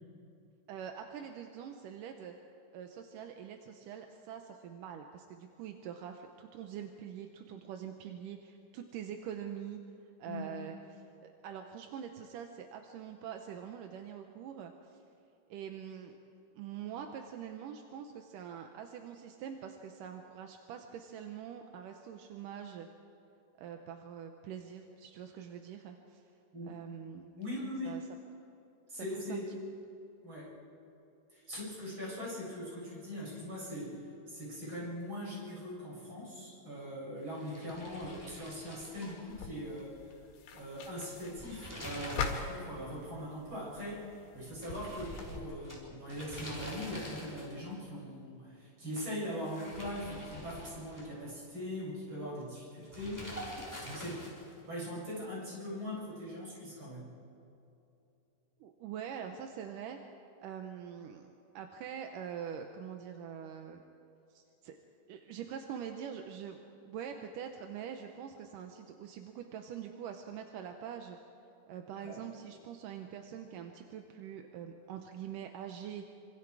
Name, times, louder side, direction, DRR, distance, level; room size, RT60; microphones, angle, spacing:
voice 1, 0.7-2.4 2.7-9.8 10.2-15.0 15.5-16.2 16.5-22.9 23.6-26.2 26.7-27.3 27.8-28.0 28.9-29.4 58.6-60.0 60.4-61.3 61.5-63.8 64.3-64.8 65.1-66.6 66.8-71.2 71.7-76.2, right 8 dB, 70° right, 5 dB, 2.1 m, -44 dB
voice 2, 10.2-10.6 26.5-26.8 27.4-28.0 28.9-29.5 30.2-30.5 31.3-34.0 34.3-40.0 40.5-54.3 54.7-57.1 72.0-72.2, equal, 30° right, -6 dB, 8.4 m, -41 dB
sound 1, 37.3-39.8 40.1-40.2 41.2-42.6 42.9-43.0 44.6-47.7 49.3-51.3 52.9-54.6, equal, 5° left, 3.9 m, -46 dB
sound 2, 39.3-45.4, left 5 dB, 90° left, 4.1 m, -43 dB
27.0 x 25.5 x 4.8 m, 2.8 s
omnidirectional pair, 4.6 m